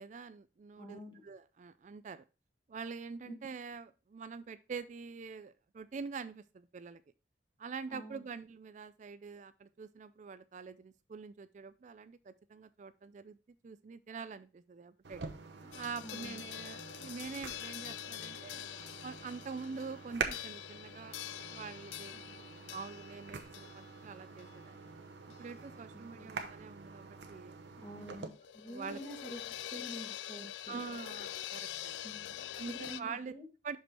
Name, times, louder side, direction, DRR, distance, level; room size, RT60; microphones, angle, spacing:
voice 1, 0.0-2.2 2.7-7.0 7.6-13.4 13.6-15.2 15.7-18.6 19.0-21.2 21.5-22.4 22.7-24.8 25.4-27.6 28.0-28.1 28.7-29.0 30.7-32.1 32.5-33.3 33.6-33.8, right 5 dB, 45° right, 13 dB, 0.4 m, -45 dB
voice 2, 0.8-1.2 3.2-3.4 7.9-8.2 15.6-15.7 16.0-16.4 22.1-22.5 26.2-26.3 27.8-29.4 29.7-30.8 32.0-32.4 32.7-33.5, equal, 30° left, 1 dB, 2.0 m, -47 dB
sound 1, 15.0-28.3, right 5 dB, 85° right, 0.9 m, -46 dB
sound 2, 15.7-25.6 25.9-26.0 28.1-33.0, left 12 dB, 90° left, 0.3 m, -45 dB
6.2 x 5.2 x 4.3 m, 0.30 s
head